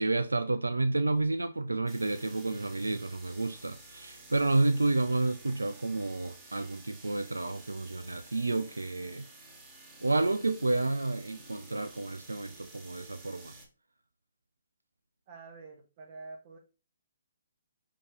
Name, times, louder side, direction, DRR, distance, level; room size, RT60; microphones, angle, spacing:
voice 1, 0.0-9.3 10.0-13.5, right 2 dB, 85° right, 0.3 m, -30 dB
sound 1, 1.9-13.7, right 2 dB, 15° right, 1.1 m, -52 dB
voice 2, 15.3-16.6, right 3 dB, 35° right, 0.8 m, -47 dB
4.9 x 2.8 x 3.3 m
figure-of-eight pair, 135°, 0 cm